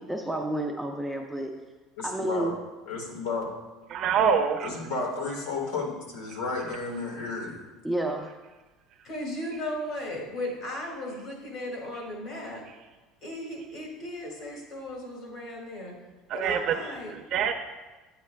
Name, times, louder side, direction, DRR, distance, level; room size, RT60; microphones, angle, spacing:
voice 1, 0.0-1.5 2.0-2.6 7.8-8.3, right 1 dB, ahead, 1 dB, 0.4 m, -30 dB
voice 2, 2.0-2.6 2.9-3.5 4.6-7.7, left 3 dB, 80° left, 0 dB, 1.6 m, -32 dB
voice 3, 3.9-4.7 16.3-16.8 17.1-17.5, right 7 dB, 45° right, 5 dB, 0.6 m, -25 dB
voice 4, 9.0-12.7 13.2-16.0 16.3-17.1, left 1 dB, 45° left, -1 dB, 1.9 m, -36 dB
8.7 x 8.4 x 2.2 m, 1.2 s
cardioid pair, 155°, 0 cm